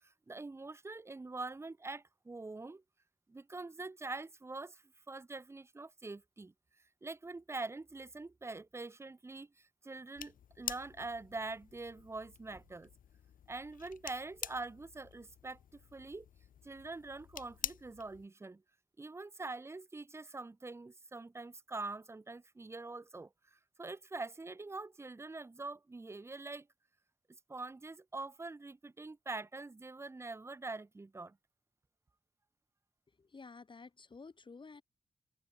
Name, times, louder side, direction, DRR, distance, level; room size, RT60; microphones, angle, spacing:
voice 1, 0.0-2.8 3.3-6.5 7.0-12.9 13.5-16.3 16.6-18.6 19.0-26.7 27.5-31.4, right 3 dB, 20° right, 0.4 m, -44 dB
sound 1, 10.1-18.3, left 9 dB, 75° left, 0.4 m, -47 dB
voice 2, 33.2-34.8, left 4 dB, 35° left, 0.7 m, -52 dB
cardioid pair, 75°, 14 cm